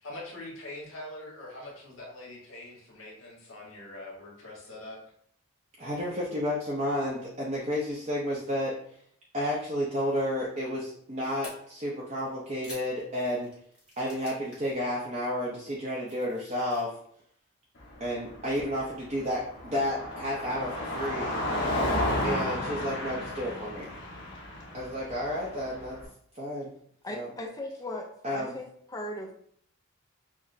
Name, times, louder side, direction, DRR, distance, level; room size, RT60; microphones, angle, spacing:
voice 1, 0.0-5.0, left 1 dB, 75° left, -3 dB, 1.4 m, -43 dB
voice 2, 5.8-8.7 9.3-13.5 14.0-16.9 18.0-21.4 22.2-23.9 24.7-26.0 26.3-26.7 27.1-27.3 28.2-28.5, equal, 30° right, -5 dB, 0.6 m, -31 dB
sound 1, 11.4-11.5 12.2-14.7 15.0-15.2 15.7-16.8, left 1 dB, 5° right, 1.0 m, -49 dB
Car passing by, 17.8-26.0, left 1 dB, 55° left, 0.9 m, -33 dB
voice 3, 27.0-29.3, left 1 dB, 15° left, 2 dB, 0.4 m, -38 dB
5.9 x 2.0 x 2.6 m, 0.64 s
head